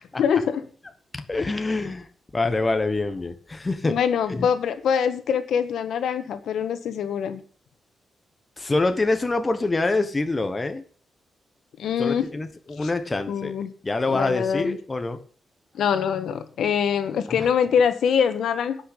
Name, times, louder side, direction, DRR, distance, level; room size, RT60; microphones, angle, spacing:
voice 1, 0.2-0.6 3.8-7.4 11.8-12.3 13.3-13.7 14.1-14.8 15.7-18.8, left 7 dB, 85° left, 9 dB, 1.4 m, -24 dB
voice 2, 1.1-2.1 2.3-4.0 4.3-4.5 8.6-10.8 12.0-13.5 13.8-15.2 17.3-17.5, left 3 dB, 20° left, 8 dB, 1.2 m, -25 dB
11.0 x 6.1 x 8.3 m, 0.43 s
wide cardioid pair, 145°, 0 cm